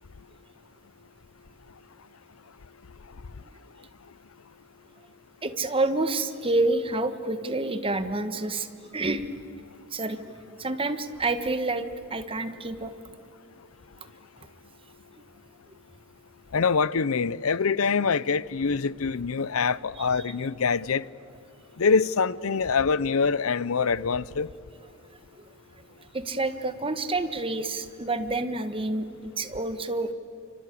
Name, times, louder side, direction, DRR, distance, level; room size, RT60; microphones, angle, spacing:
voice 1, 5.4-8.7 8.9-9.2 9.9-10.2 10.6-12.9 20.0-20.1 25.4-25.5 26.1-30.1, right 2 dB, 25° right, 1.4 m, -28 dB
voice 2, 16.5-21.0 21.8-24.5, left 5 dB, 80° left, 0.7 m, -25 dB
27.0 x 25.5 x 8.5 m
head